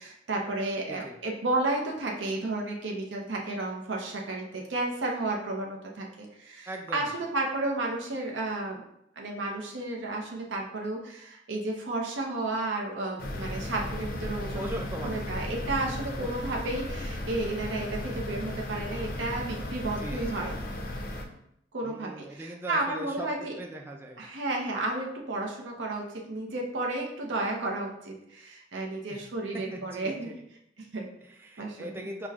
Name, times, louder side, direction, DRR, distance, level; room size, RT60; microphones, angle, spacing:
voice 1, 0.0-8.8 9.2-14.6 15.0-20.6 21.7-23.6 24.2-30.3 30.8-31.1 31.6-31.9, right 2 dB, 85° right, 0 dB, 0.6 m, -32 dB
voice 2, 0.9-1.2 6.7-7.1 14.5-15.3 16.2-16.3 20.0-20.5 21.8-24.2 29.1-29.3 29.5-30.3 31.2-32.3, right 1 dB, 10° right, 2 dB, 0.3 m, -40 dB
sound 1, 13.2-21.2, left 1 dB, 50° left, 0.5 m, -35 dB
5.9 x 2.1 x 2.3 m, 0.77 s
head